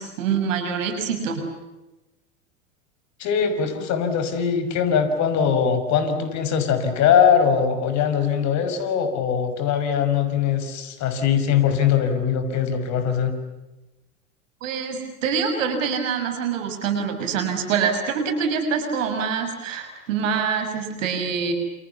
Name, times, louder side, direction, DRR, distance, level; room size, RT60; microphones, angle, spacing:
voice 1, 0.0-1.4 14.6-21.5, right 6 dB, 70° right, 6 dB, 6.8 m, -25 dB
voice 2, 3.2-13.3, left 7 dB, 45° left, 9 dB, 5.9 m, -21 dB
28.5 x 28.5 x 7.1 m, 1.0 s
hypercardioid pair, 95°, 40 cm